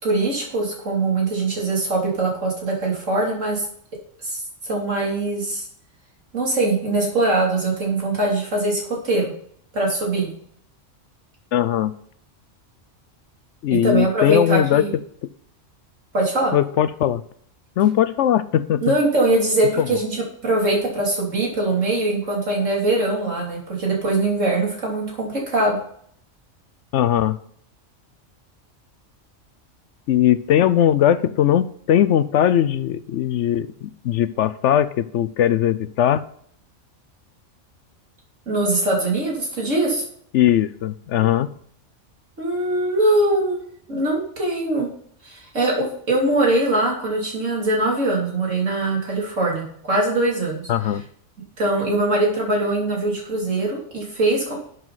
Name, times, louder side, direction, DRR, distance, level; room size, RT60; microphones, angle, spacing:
voice 1, 0.0-3.7 4.2-5.6 6.3-9.3 9.7-10.3 13.8-14.9 16.1-16.5 18.8-25.8 38.5-40.0 42.4-43.6 43.9-44.9 45.2-50.6 51.6-54.6, right 2 dB, 85° right, -2 dB, 3.3 m, -22 dB
voice 2, 11.5-11.9 13.6-14.9 16.5-17.2 17.8-18.9 19.8-20.0 26.9-27.4 30.1-36.2 40.3-41.5 50.7-51.0, left 10 dB, 75° left, 15 dB, 0.9 m, -19 dB
12.0 x 8.1 x 4.0 m, 0.63 s
omnidirectional pair, 1.3 m